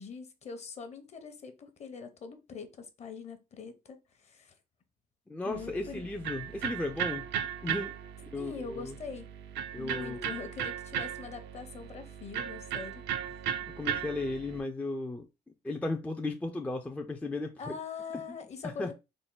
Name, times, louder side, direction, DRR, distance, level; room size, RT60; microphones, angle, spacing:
voice 1, 0.0-4.5 5.4-6.0 8.3-9.3 9.8-13.0 17.6-18.9, left 5 dB, 40° left, 0.8 m, -43 dB
voice 2, 5.3-7.3 7.6-7.9 8.3-8.9 9.7-10.3 13.8-15.3 15.6-17.8 18.1-18.2 18.6-18.9, left 2 dB, 10° left, 0.4 m, -35 dB
Electric guitar, 5.5-14.6, right 9 dB, 80° right, 0.5 m, -37 dB
3.7 x 2.2 x 3.7 m
cardioid pair, 110°, 17 cm